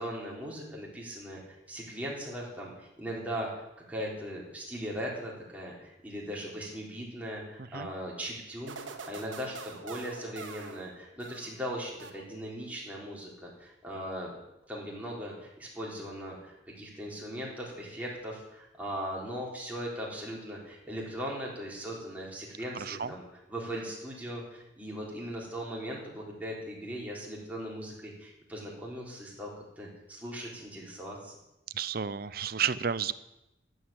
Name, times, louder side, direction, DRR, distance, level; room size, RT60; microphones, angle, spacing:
voice 1, 0.0-3.5 3.9-14.3 14.7-23.2 23.5-29.5 29.8-31.4, equal, 10° right, -4 dB, 3.8 m, -39 dB
sound 1, 8.7-11.6 12.0-12.6, right 4 dB, 85° right, 1.5 m, -45 dB
voice 2, 22.7-23.1 31.7-33.1, right 7 dB, 50° right, 15 dB, 0.6 m, -32 dB
14.0 x 8.1 x 8.7 m, 0.93 s
head